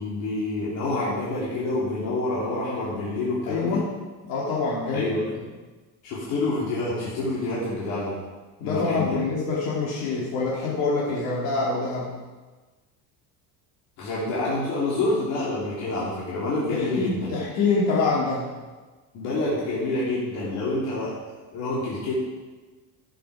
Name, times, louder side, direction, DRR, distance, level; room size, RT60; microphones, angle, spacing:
voice 1, 0.0-3.8 4.9-5.2 6.0-8.2 8.6-9.2 14.0-17.4 19.1-21.2 21.5-22.1, left 2 dB, 65° left, -7 dB, 3.4 m, -27 dB
voice 2, 3.5-3.9 4.2-5.1 8.6-12.1 16.7-18.4, left 3 dB, 80° left, -6 dB, 2.8 m, -25 dB
12.0 x 9.2 x 5.0 m, 1.3 s
cardioid pair, 160°, 35 cm